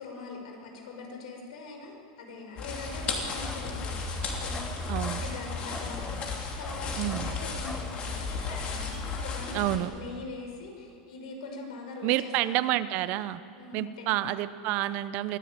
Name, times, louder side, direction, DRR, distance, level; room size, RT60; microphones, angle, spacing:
voice 1, 0.0-4.1 4.4-12.7 13.6-14.2, left 3 dB, 80° left, 2 dB, 5.9 m, -42 dB
sound 1, 2.6-9.8, left 4 dB, 30° left, 2.9 m, -35 dB
Bark, 2.7-9.8, left 1 dB, 5° left, 0.9 m, -41 dB
voice 2, 4.9-5.2 7.0-7.3 9.5-9.9 12.0-13.4 13.7-15.4, right 15 dB, 45° right, 14 dB, 0.8 m, -29 dB
24.0 x 15.0 x 9.1 m, 2.4 s
supercardioid pair, 155°, 4 cm